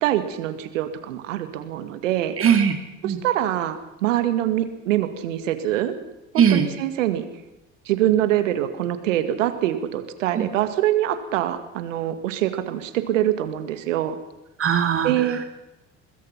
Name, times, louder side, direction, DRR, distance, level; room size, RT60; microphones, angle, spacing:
voice 1, 0.0-2.4 3.0-5.9 6.3-7.2 7.9-14.2 15.0-15.4, right 12 dB, 75° right, 10 dB, 2.0 m, -24 dB
voice 2, 2.4-2.8 3.0-3.2 6.4-6.7 10.4-10.5 14.6-15.4, right 8 dB, 35° right, 6 dB, 2.3 m, -20 dB
24.5 x 21.5 x 5.8 m, 0.95 s
hypercardioid pair, 60°, 38 cm